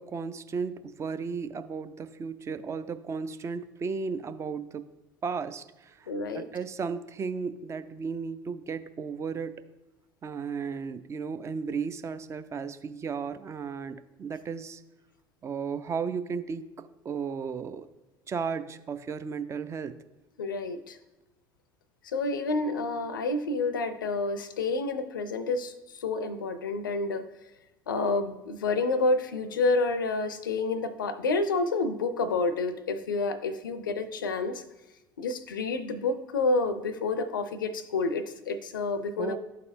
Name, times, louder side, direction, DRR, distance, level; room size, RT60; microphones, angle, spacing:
voice 1, 0.0-4.8 5.2-9.5 10.2-14.8 15.4-17.9 18.3-19.9 39.2-39.4, right 5 dB, 25° right, 11 dB, 0.4 m, -34 dB
voice 2, 6.1-6.5 20.4-21.0 22.0-27.3 27.9-34.6 35.2-39.4, left 3 dB, 75° left, 13 dB, 0.5 m, -29 dB
12.5 x 4.1 x 2.6 m, 1.0 s
figure-of-eight pair, 65°, 11 cm